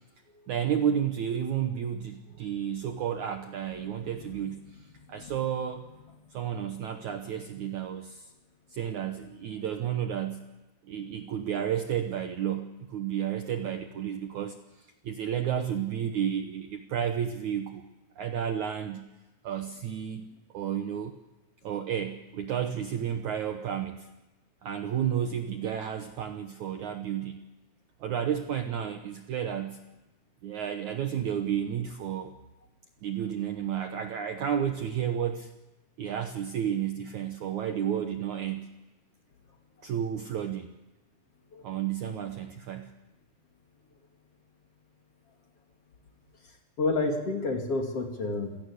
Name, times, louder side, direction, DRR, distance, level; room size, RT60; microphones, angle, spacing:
voice 1, 0.5-5.8 6.3-8.3 8.7-10.4 10.8-17.8 18.2-19.0 19.4-20.3 20.5-21.2 21.6-24.1 24.6-27.4 28.0-29.8 30.4-32.4 33.0-35.5 36.0-38.7 39.8-40.7 41.6-42.9, right 9 dB, 65° right, 6 dB, 2.0 m, -32 dB
voice 2, 3.8-4.4 5.0-5.3 41.5-41.6 46.8-48.6, left 3 dB, 40° left, 3 dB, 2.9 m, -30 dB
27.5 x 17.5 x 8.4 m, 1.1 s
omnidirectional pair, 4.7 m